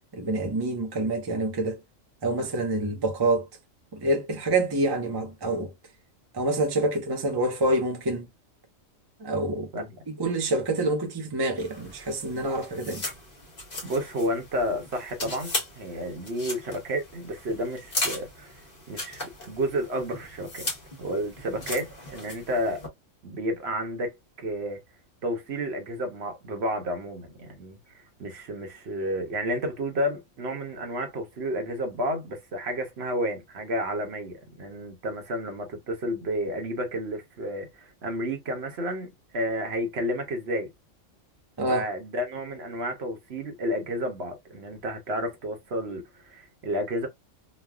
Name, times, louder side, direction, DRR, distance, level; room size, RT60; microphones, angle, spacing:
voice 1, 0.1-1.8 2.2-3.5 3.9-5.7 6.3-8.3 9.2-9.8 10.2-13.0 41.6-41.9, right 2 dB, 25° right, 0.5 m, -27 dB
sound 1, 11.6-22.9, left 2 dB, 35° left, 1.2 m, -37 dB
voice 2, 13.8-18.6 18.9-20.7 21.0-22.8 23.2-24.8 25.2-27.8 28.2-40.7 41.7-47.1, equal, 55° right, 1.0 m, -31 dB
3.1 x 2.3 x 2.2 m
omnidirectional pair, 1.4 m